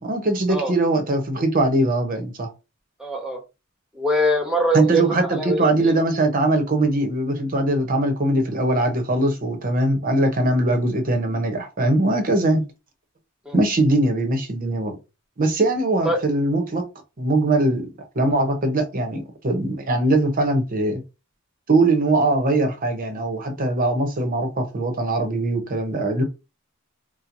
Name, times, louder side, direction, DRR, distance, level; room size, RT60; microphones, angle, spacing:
voice 1, 0.0-2.5 4.7-12.6 13.5-14.9 15.4-16.9 17.2-17.9 18.1-21.0 21.7-26.2, right 2 dB, 40° right, 0.8 m, -21 dB
voice 2, 3.0-3.4 3.9-5.9 13.4-13.6 16.0-16.2, right 1 dB, 5° right, 1.0 m, -23 dB
4.4 x 2.1 x 2.6 m
head